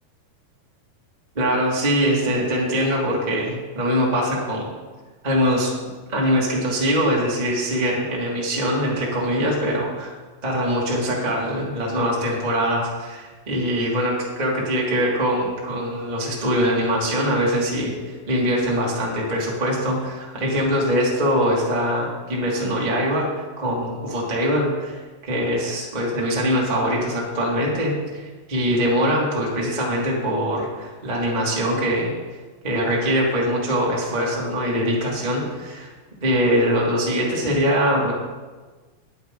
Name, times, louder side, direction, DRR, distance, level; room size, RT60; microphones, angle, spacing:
voice 1, 1.3-4.7 5.2-5.7 6.1-10.1 10.4-24.9 25.2-32.1 32.6-35.9 36.2-38.1, equal, 15° right, -4 dB, 1.6 m, -22 dB
19.0 x 8.2 x 3.9 m, 1.3 s
omnidirectional pair, 4.9 m